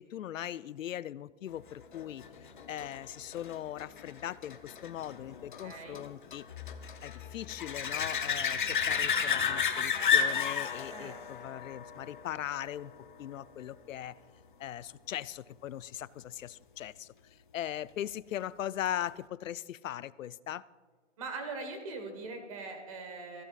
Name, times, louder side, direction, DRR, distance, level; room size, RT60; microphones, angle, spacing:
voice 1, 0.0-2.2 2.7-6.4 7.0-12.9 13.2-14.2 14.6-17.1 17.5-20.6, left 11 dB, 85° left, 19 dB, 0.5 m, -39 dB
sound 1, 1.9-13.2 18.9-19.0, left 7 dB, 40° left, 0.6 m, -33 dB
voice 2, 5.6-6.0 10.9-11.2 11.4-11.6 21.2-23.4, right 3 dB, 25° right, 5 dB, 1.4 m, -41 dB
18.5 x 15.0 x 2.4 m, 1.5 s
hypercardioid pair, 170°, 38 cm